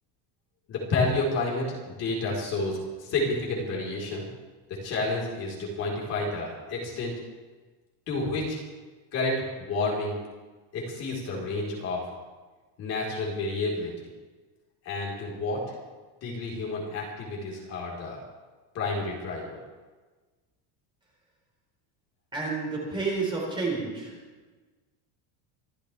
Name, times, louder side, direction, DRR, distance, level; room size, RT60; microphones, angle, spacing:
voice 1, 0.7-1.7 2.0-4.3 4.7-7.1 8.1-8.6 9.1-10.2 10.7-12.1 12.8-14.1 14.8-15.7 16.2-18.2 18.7-19.6, left 2 dB, 35° left, -4 dB, 4.3 m, -30 dB
voice 2, 22.3-24.2, right 3 dB, 10° right, -3 dB, 4.3 m, -30 dB
26.0 x 14.0 x 3.5 m, 1.3 s
cardioid pair, 180°, 43 cm